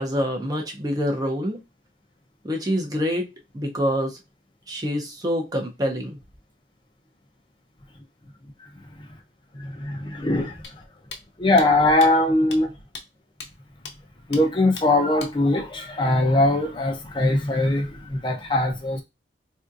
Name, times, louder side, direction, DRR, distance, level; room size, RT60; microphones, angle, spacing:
voice 1, 0.0-1.6 2.4-3.3 3.5-4.2 4.7-6.2, equal, 20° right, 0.6 m, -26 dB
voice 2, 9.6-10.8 11.4-12.7 14.3-19.0, left 2 dB, 30° left, 0.6 m, -21 dB
sound 1, 10.6-10.7 11.1-11.2 11.6-11.7 12.0-12.1 12.5-12.6 12.9-13.0 13.4-13.5 13.9-14.0 14.3-14.4 14.8-14.9 15.2-15.3, left 4 dB, 85° left, 0.6 m, -37 dB
3.5 x 2.7 x 2.5 m
head